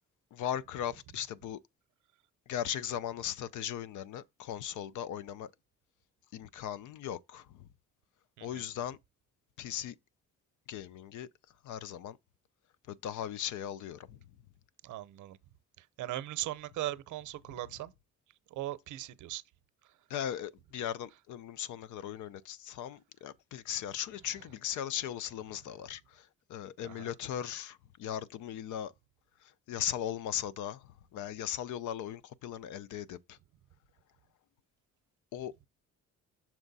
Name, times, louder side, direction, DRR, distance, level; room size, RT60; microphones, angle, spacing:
voice 1, 0.3-1.6 2.5-5.5 6.3-7.7 8.4-9.0 9.6-10.0 10.7-11.3 11.6-12.2 12.9-14.2 20.1-28.9 29.4-33.4 35.3-35.7, left 10 dB, 80° left, 0.6 m, -38 dB
voice 2, 14.8-15.4 15.8-17.9 18.5-19.4 19.8-19.9 26.8-27.1, right 15 dB, 80° right, 0.7 m, -39 dB
6.2 x 4.4 x 4.0 m
cardioid pair, 90°, 30 cm